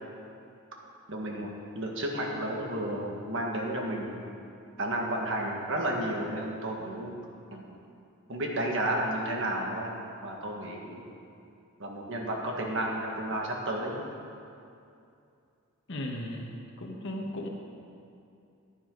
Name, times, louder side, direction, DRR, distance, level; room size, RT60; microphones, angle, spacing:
voice 1, 1.1-1.5 1.8-4.2 4.8-7.2 7.5-7.6 8.3-9.9 10.2-11.0 11.8-14.0, right 1 dB, 60° right, -1 dB, 1.7 m, -32 dB
voice 2, 15.9-17.5, left 1 dB, 55° left, 0 dB, 1.3 m, -36 dB
15.0 x 10.5 x 3.9 m, 2.5 s
head